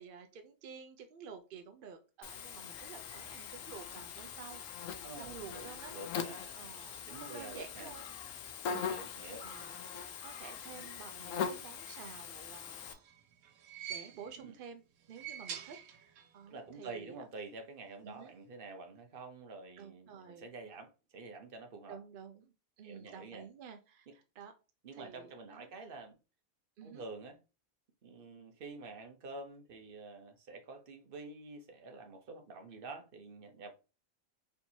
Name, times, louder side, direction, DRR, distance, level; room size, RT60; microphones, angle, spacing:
voice 1, 0.0-4.6 5.2-5.9 6.5-8.0 8.7-9.9 10.2-13.0 13.9-14.8 15.1-17.3 18.0-18.3 19.8-20.5 21.9-24.5 24.9-25.7 26.8-27.0, right 6 dB, 65° right, 0.5 m, -51 dB
Buzz, 2.2-12.9, left 7 dB, 70° left, 0.9 m, -42 dB
voice 2, 5.0-7.9 8.6-9.4 14.4-14.5 16.5-22.0 22.8-23.4 24.1-24.2 24.8-26.2 26.8-27.4 28.0-33.7, right 3 dB, 45° right, 0.9 m, -48 dB
sound 1, 12.6-14.5 15.0-16.4 16.7-16.8 17.9-18.0, right 9 dB, 90° right, 1.1 m, -47 dB
4.4 x 3.4 x 2.7 m
omnidirectional pair, 1.4 m